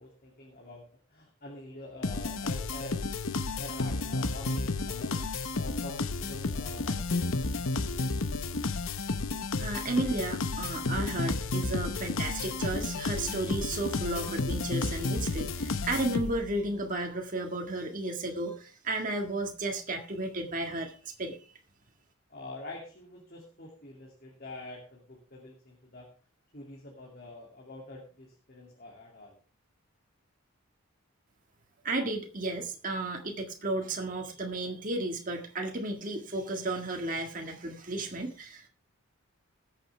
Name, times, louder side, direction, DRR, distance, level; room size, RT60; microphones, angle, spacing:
voice 1, 0.0-3.0 3.6-5.2 5.5-7.2 22.3-26.1 26.5-29.4, left 2 dB, 45° left, -1 dB, 2.5 m, -46 dB
sound 1, 2.0-16.6, left 3 dB, 60° left, 0.8 m, -32 dB
voice 2, 9.6-21.4 31.8-38.7, right 2 dB, 35° right, 3 dB, 1.7 m, -33 dB
20.0 x 7.3 x 3.4 m, 0.37 s
head